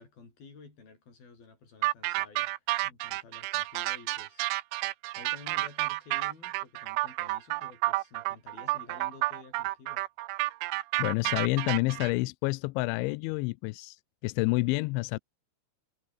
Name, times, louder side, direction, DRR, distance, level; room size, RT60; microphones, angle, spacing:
voice 1, 0.0-4.5 5.2-10.0, left 4 dB, 50° left, 8.7 m, -52 dB
sound 1, 1.8-12.1, right 20 dB, 85° right, 3.2 m, -31 dB
voice 2, 11.0-14.0 14.2-15.2, left 24 dB, 85° left, 2.7 m, -28 dB
omnidirectional pair, 5.7 m